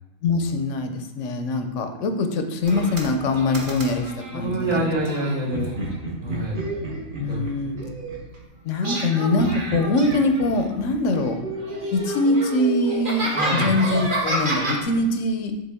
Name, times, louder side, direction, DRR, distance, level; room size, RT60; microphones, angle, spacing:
voice 1, 0.2-4.8 7.2-7.8 8.6-11.4 11.9-15.5, left 2 dB, 65° left, 6 dB, 0.9 m, -23 dB
sound 1, 2.6-4.4 5.1-8.4 8.8-10.9 11.1-14.8, right 2 dB, 40° right, 1.0 m, -29 dB
voice 2, 4.3-5.7 6.2-6.6 7.3-7.4 13.3-13.7, right 1 dB, 65° right, -8 dB, 2.3 m, -26 dB
8.6 x 3.7 x 3.5 m, 1.0 s
omnidirectional pair, 1.6 m